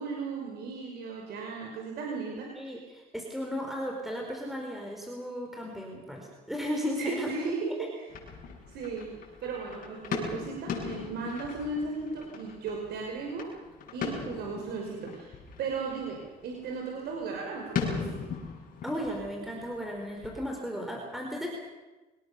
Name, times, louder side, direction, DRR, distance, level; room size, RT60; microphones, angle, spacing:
voice 1, 0.0-2.5 7.0-8.1 8.7-9.1 9.4-13.5 13.9-15.3 15.6-18.2, right 4 dB, 75° right, 0 dB, 5.5 m, -35 dB
voice 2, 2.6-7.3 18.8-21.5, equal, ahead, 0 dB, 4.6 m, -35 dB
sound 1, 8.1-20.4, left 6 dB, 55° left, 7.9 m, -39 dB
25.5 x 20.5 x 7.0 m, 1.2 s
cardioid pair, 110°, 17 cm